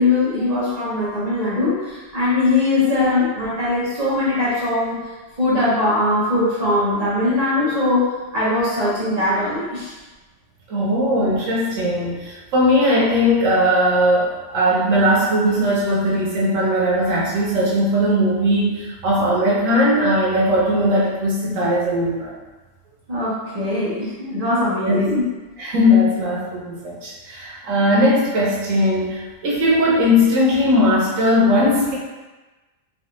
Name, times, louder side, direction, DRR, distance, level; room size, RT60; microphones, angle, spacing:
voice 1, 0.0-5.0 5.4-9.9 23.1-25.2, left 2 dB, 40° right, -10 dB, 0.7 m, -21 dB
voice 2, 10.7-22.3 24.8-25.0 25.6-32.0, left 1 dB, 85° right, -5 dB, 1.1 m, -18 dB
3.1 x 2.3 x 2.9 m, 1.2 s
omnidirectional pair, 1.3 m